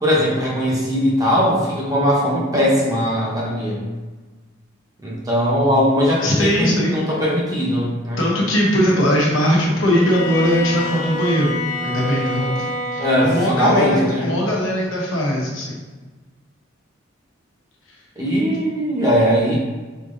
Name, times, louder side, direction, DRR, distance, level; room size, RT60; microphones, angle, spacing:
voice 1, 0.0-3.8 5.0-8.2 13.0-14.3 18.2-19.6, equal, 20° right, -5 dB, 0.9 m, -19 dB
voice 2, 6.2-7.1 8.2-15.8, equal, 85° left, -3 dB, 1.1 m, -20 dB
Bowed string instrument, 9.9-13.6, left 1 dB, 40° left, 0.4 m, -27 dB
3.8 x 2.8 x 3.8 m, 1.3 s
head